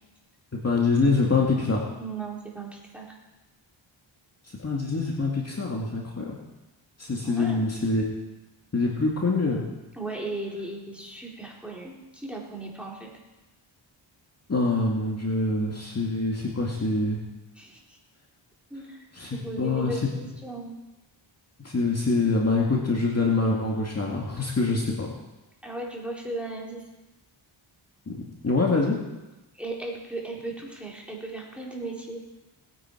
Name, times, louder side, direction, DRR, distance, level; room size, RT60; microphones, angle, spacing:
voice 1, 0.6-1.9 4.6-6.3 7.0-8.1 8.7-9.6 14.5-17.2 19.1-20.0 21.6-25.1 28.1-28.2 28.4-29.0, left 3 dB, 30° left, -2 dB, 2.3 m, -25 dB
voice 2, 2.0-3.2 7.2-7.6 9.9-13.1 17.6-18.0 18.7-19.0 19.3-20.8 25.6-26.8 29.6-32.2, right 2 dB, ahead, -3 dB, 3.7 m, -36 dB
20.0 x 9.7 x 4.6 m, 1.1 s
cardioid pair, 90°, 49 cm